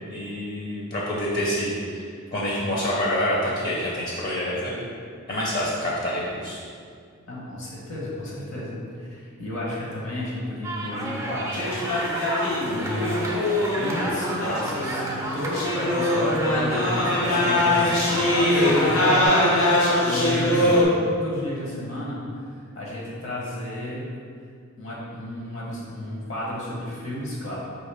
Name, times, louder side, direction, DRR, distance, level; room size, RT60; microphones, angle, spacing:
voice 1, 0.1-2.1 2.3-4.9 5.3-6.6 20.6-20.9, equal, 45° left, -5 dB, 0.6 m, -27 dB
voice 2, 7.3-11.7 12.6-18.0 18.5-20.7 21.0-22.2 22.8-24.1 24.8-27.6, left 1 dB, 65° left, -5 dB, 1.0 m, -32 dB
sound 1, 10.6-19.3, right 1 dB, 15° right, 0.3 m, -31 dB
sound 2, 11.5-20.8, left 1 dB, 90° left, 0.9 m, -22 dB
4.8 x 2.9 x 3.3 m, 2.2 s
head